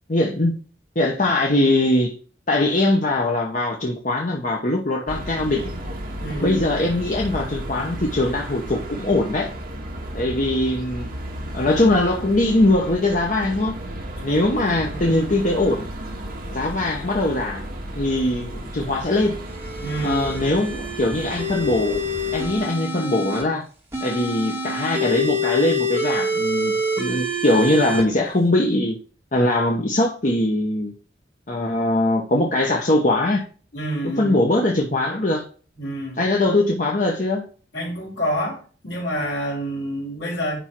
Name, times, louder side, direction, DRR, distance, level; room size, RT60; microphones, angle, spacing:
voice 1, 0.1-0.6 0.9-2.1 2.5-5.7 6.4-9.5 10.1-11.1 11.5-13.8 14.2-15.9 16.5-17.6 17.9-19.4 20.0-22.0 22.3-23.7 24.0-29.0 29.3-30.9 31.5-33.4 34.0-35.4 36.2-37.4, left 1 dB, 45° left, 1.1 m, -21 dB
sound 1, 5.1-22.6, right 1 dB, 50° right, 2.1 m, -34 dB
voice 2, 6.2-6.6 14.2-14.4 14.8-15.0 19.8-20.3 33.7-34.5 35.8-36.2 37.7-40.6, equal, 70° left, 3.8 m, -28 dB
sound 2, 19.5-23.4 23.9-28.0, left 1 dB, 15° right, 2.6 m, -26 dB
10.5 x 3.6 x 4.6 m
head